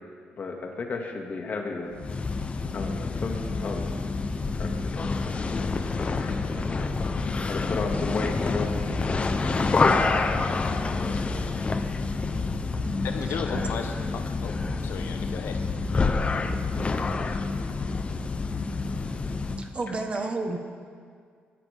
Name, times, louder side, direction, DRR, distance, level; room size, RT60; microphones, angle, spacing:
voice 1, 0.4-2.0 2.7-4.2 4.5-5.3 5.6-6.9 7.4-9.3, left 4 dB, 45° left, 1 dB, 2.1 m, -34 dB
sound 1, 1.9-19.7, left 3 dB, 30° left, 0.9 m, -27 dB
voice 2, 13.0-14.5 14.8-15.6, left 6 dB, 70° left, 5 dB, 0.9 m, -35 dB
voice 3, 19.6-20.6, right 3 dB, 30° right, 5 dB, 1.3 m, -30 dB
21.0 x 13.5 x 3.6 m, 2.1 s
cardioid pair, 105°, 4 cm